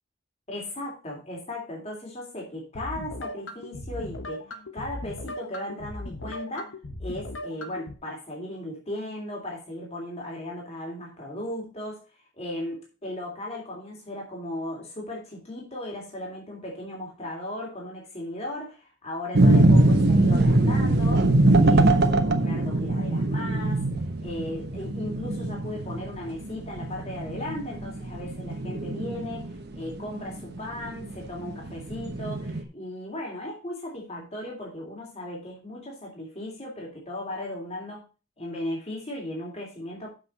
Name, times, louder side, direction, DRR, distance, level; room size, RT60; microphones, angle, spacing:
voice 1, 0.5-6.7 7.0-12.0 12.4-21.3 21.6-23.8 24.2-38.0 38.4-40.1, left 1 dB, 35° left, -1 dB, 3.1 m, -36 dB
sound 1, 2.7-7.9, left 1 dB, 85° left, 1.3 m, -38 dB
sound 2, 19.3-32.6, right 2 dB, 60° right, 1.1 m, -22 dB
7.9 x 6.0 x 5.5 m, 0.32 s
head